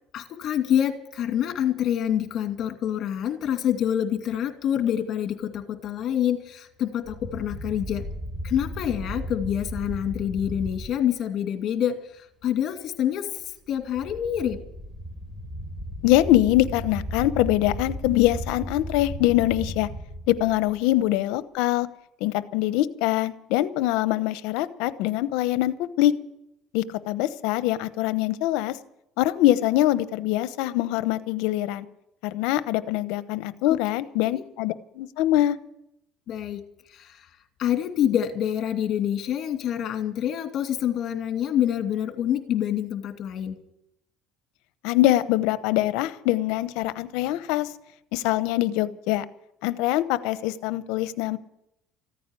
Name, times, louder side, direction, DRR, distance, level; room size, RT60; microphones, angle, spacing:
voice 1, 0.1-8.0 8.4-13.4 13.7-14.6 33.7-33.8 34.3-34.4 36.3-36.6 36.9-37.2 37.6-43.5, left 10 dB, 50° left, 5 dB, 2.4 m, -26 dB
sound 1, 7.0-10.9 13.7-21.0, equal, 5° right, 3.8 m, -35 dB
voice 2, 16.0-19.9 20.3-21.9 22.2-26.1 26.7-28.8 29.2-31.9 32.2-35.6 44.8-47.7 48.1-49.2 49.6-51.4, left 15 dB, 80° left, 14 dB, 0.9 m, -23 dB
15.0 x 9.3 x 9.9 m, 0.80 s
cardioid pair, 120°, 0 cm